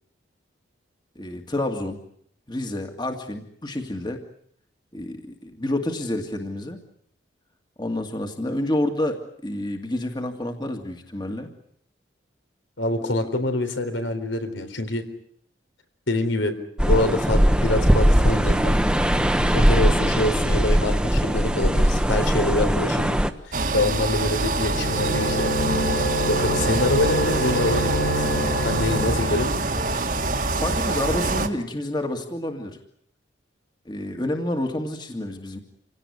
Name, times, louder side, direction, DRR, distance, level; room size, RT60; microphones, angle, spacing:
voice 1, 1.2-2.0 2.5-4.2 4.9-6.8 7.8-11.5 28.5-28.6 29.0-29.2 30.6-32.8 33.9-35.6, left 1 dB, 25° left, 5 dB, 2.1 m, -29 dB
voice 2, 12.8-15.0 16.1-16.5 16.8-18.8 19.5-23.2 23.5-25.5 26.3-28.3 28.6-29.5, left 2 dB, 80° left, 7 dB, 4.0 m, -25 dB
sound 1, 16.8-23.3, equal, 5° right, 1.1 m, -20 dB
sound 2, 23.5-31.5, right 2 dB, 45° right, 1.8 m, -25 dB
sound 3, 24.4-29.6, equal, 50° left, 2.2 m, -27 dB
27.0 x 17.5 x 9.8 m, 0.66 s
head